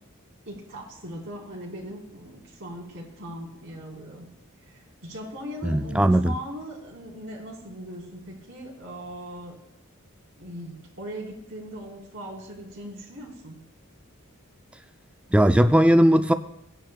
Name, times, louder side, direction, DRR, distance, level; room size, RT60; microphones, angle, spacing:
voice 1, 0.5-4.3 4.6-9.6 10.4-13.6, equal, 60° right, 3.8 m, -39 dB
voice 2, 5.6-6.3 15.3-16.3, right 1 dB, 5° right, 0.3 m, -18 dB
17.5 x 10.5 x 2.3 m
head